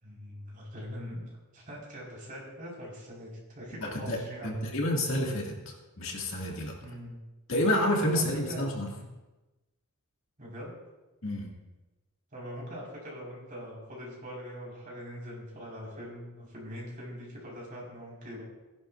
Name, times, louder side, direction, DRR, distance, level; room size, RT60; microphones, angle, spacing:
voice 1, 0.0-4.8 6.8-7.2 8.1-9.0 10.4-10.7 12.3-18.4, equal, 35° right, -4 dB, 4.8 m, -42 dB
voice 2, 3.7-6.7 7.5-8.9 11.2-11.5, left 1 dB, 60° left, -1 dB, 2.2 m, -29 dB
18.0 x 10.5 x 2.6 m, 1.1 s
head